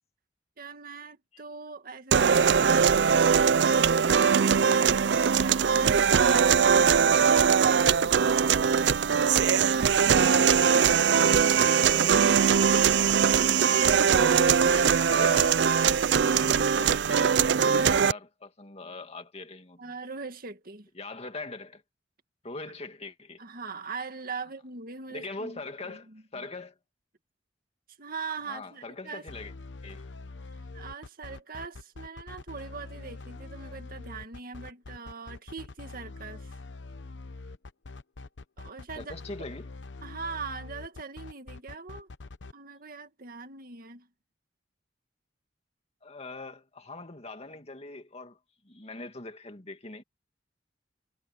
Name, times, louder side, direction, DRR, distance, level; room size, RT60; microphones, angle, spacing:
voice 1, 0.6-8.2 13.2-14.4 19.8-20.9 23.4-26.5 28.0-29.2 30.7-36.5 38.6-39.1 40.0-42.1 42.5-44.1, right 4 dB, 55° right, 2.0 m, -41 dB
sound 1, 2.1-18.1, right 7 dB, 70° right, 0.5 m, -21 dB
voice 2, 10.0-12.8 14.2-15.7 16.8-20.0 20.9-21.8 22.4-23.4 25.1-26.8 28.5-29.5 29.8-30.1 39.0-39.7 46.0-48.4 48.6-50.0, left 3 dB, 35° left, 2.4 m, -41 dB
sound 2, 29.3-42.5, left 3 dB, 90° left, 0.9 m, -44 dB
head